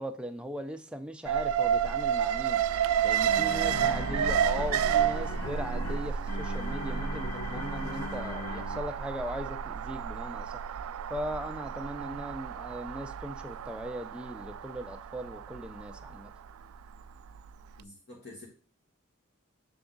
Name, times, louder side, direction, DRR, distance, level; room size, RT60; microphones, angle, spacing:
voice 1, 0.0-2.6 3.0-10.6 11.1-16.3, equal, 5° right, 0.5 m, -39 dB
Alarm, 1.2-17.4 17.7-17.8, right 8 dB, 80° right, 0.3 m, -31 dB
sound 1, 2.7-9.1, left 4 dB, 80° left, 0.7 m, -40 dB
sound 2, 3.5-7.6, right 1 dB, 35° left, 1.1 m, -52 dB
voice 2, 17.8-18.5, left 2 dB, 55° left, 1.3 m, -48 dB
6.9 x 3.5 x 3.8 m
head